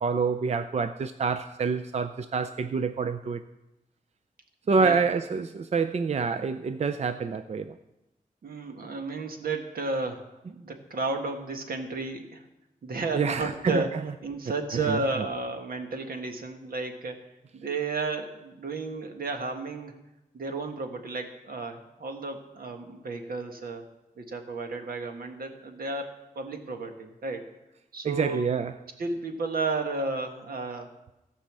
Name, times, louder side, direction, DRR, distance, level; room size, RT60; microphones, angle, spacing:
voice 1, 0.0-3.4 4.7-7.8 13.1-13.8 14.7-15.0 28.0-28.7, right 5 dB, 45° right, 11 dB, 0.5 m, -27 dB
voice 2, 4.7-5.0 8.4-12.4 12.8-13.9 14.2-17.2 17.5-20.0 20.3-23.9 24.2-26.1 26.3-27.4 27.9-28.4 29.0-30.9, right 3 dB, 80° right, 5 dB, 1.6 m, -33 dB
16.5 x 5.5 x 7.4 m, 0.94 s
wide cardioid pair, 115°, 15 cm